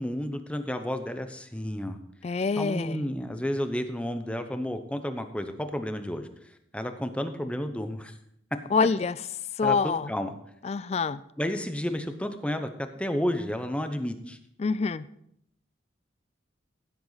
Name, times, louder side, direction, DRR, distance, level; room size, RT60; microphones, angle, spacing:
voice 1, 0.0-2.0 2.6-6.3 6.7-8.1 9.6-10.3 11.4-12.7 13.0-14.4, equal, 5° left, 8 dB, 0.7 m, -31 dB
voice 2, 2.2-3.0 8.7-9.1 9.6-10.1 10.6-11.2 14.6-15.0, left 5 dB, 30° left, 17 dB, 0.3 m, -26 dB
15.5 x 7.9 x 4.0 m, 0.74 s
head